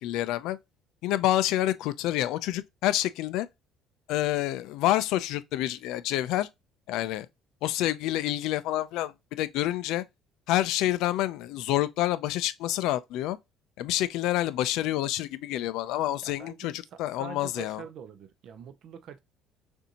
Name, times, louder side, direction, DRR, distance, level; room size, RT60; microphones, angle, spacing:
voice 1, 0.0-0.6 1.0-3.5 4.1-6.5 6.9-7.3 7.6-10.0 10.5-13.4 13.8-17.8, left 14 dB, 75° left, 0.5 m, -28 dB
voice 2, 16.2-19.2, right 7 dB, 55° right, 0.7 m, -45 dB
6.7 x 2.7 x 2.9 m
cardioid pair, 150°, 0 cm